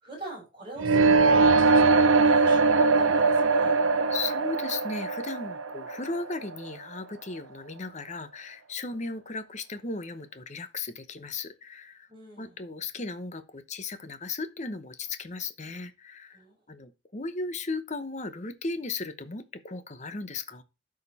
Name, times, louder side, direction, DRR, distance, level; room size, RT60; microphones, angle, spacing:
voice 1, 0.0-3.8 12.1-12.6 16.3-16.5, right 1 dB, 25° right, 6.2 m, -42 dB
sound 1, 0.8-6.7, right 4 dB, 85° right, 0.7 m, -21 dB
voice 2, 4.1-12.1 12.4-16.4 16.7-20.6, left 3 dB, 35° left, 0.8 m, -36 dB
12.5 x 5.1 x 4.1 m
head